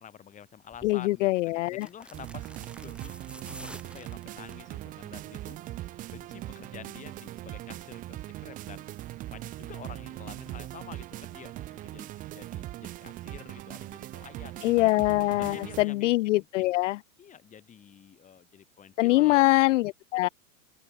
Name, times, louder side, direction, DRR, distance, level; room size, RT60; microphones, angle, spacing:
voice 1, 0.0-3.2 3.5-5.6 6.1-8.9 9.3-14.9 15.3-16.7 17.2-19.6, left 9 dB, 20° left, 2.1 m, -49 dB
sound 1, 0.7-1.0 1.7-4.7 5.0-5.4 5.7-5.8, right 1 dB, ahead, 3.3 m, -48 dB
voice 2, 0.8-1.9 14.6-17.0 19.0-20.3, left 19 dB, 60° left, 0.6 m, -23 dB
sound 2, 2.1-15.8, right 15 dB, 20° right, 0.6 m, -40 dB
open air
supercardioid pair, 145°, 42 cm